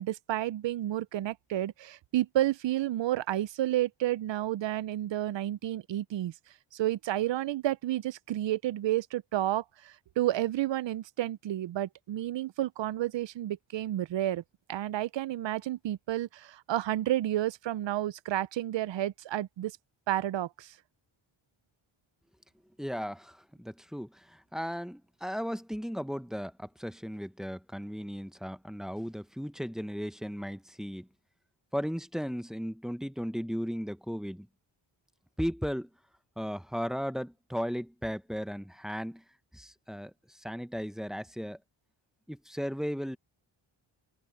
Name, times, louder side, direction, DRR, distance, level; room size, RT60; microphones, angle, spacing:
voice 1, 0.0-6.3 6.7-14.4 14.7-19.8 20.1-20.7, right 13 dB, 65° right, 0.6 m, -31 dB
voice 2, 22.8-31.1 31.7-34.5 35.4-35.9 36.4-39.2 39.5-41.6 42.3-43.2, equal, ahead, 0.7 m, -36 dB
wide cardioid pair, 135°, 47 cm